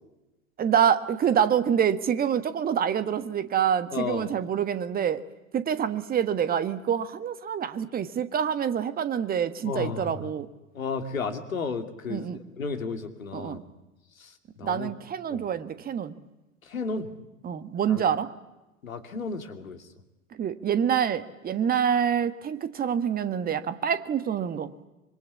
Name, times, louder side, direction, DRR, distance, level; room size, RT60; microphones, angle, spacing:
voice 1, 0.6-5.2 5.5-10.5 12.1-12.4 13.3-13.6 14.6-16.1 17.4-18.3 20.3-24.7, right 8 dB, 20° right, 13 dB, 1.4 m, -26 dB
voice 2, 3.9-4.3 9.6-10.3 10.7-13.6 14.2-14.9 15.3-15.4 16.6-17.1 17.9-18.0 18.8-19.9, left 4 dB, 75° left, 7 dB, 2.7 m, -33 dB
26.0 x 23.5 x 8.3 m, 1.0 s
figure-of-eight pair, 90°, 41 cm